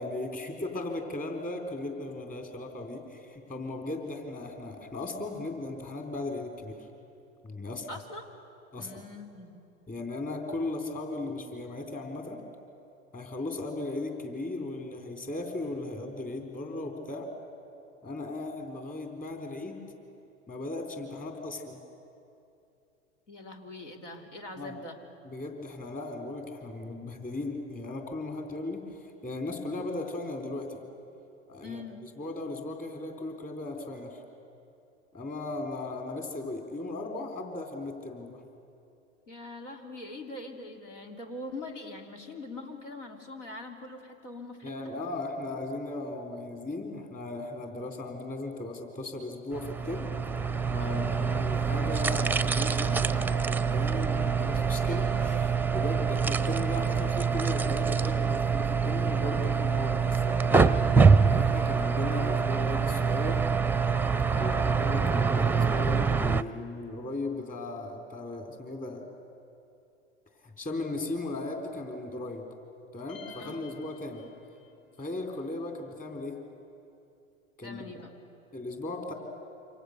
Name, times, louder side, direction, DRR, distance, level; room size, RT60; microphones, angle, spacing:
voice 1, 0.0-6.7 7.4-7.9 8.7-8.9 9.9-12.4 13.1-17.3 18.0-19.8 20.5-21.8 24.6-24.7 25.2-30.8 31.5-34.2 35.1-38.4 44.6-50.1 50.7-60.7 61.3-63.4 64.4-69.0 70.4-72.4 72.9-74.3 75.0-76.4 77.6-78.0 78.5-79.1, left 2 dB, 20° left, 3 dB, 4.2 m, -37 dB
voice 2, 7.9-8.3 8.8-9.6 23.3-25.0 31.6-32.0 39.3-44.7 50.8-51.1 64.3-64.6 73.4-73.7 77.6-78.1, left 2 dB, 90° left, 4 dB, 3.0 m, -43 dB
sound 1, 49.5-66.4, right 5 dB, 5° right, 0.6 m, -25 dB
sound 2, 73.1-74.9, left 4 dB, 55° left, 4.1 m, -50 dB
27.5 x 26.0 x 6.8 m, 2.6 s
hypercardioid pair, 90°, 36 cm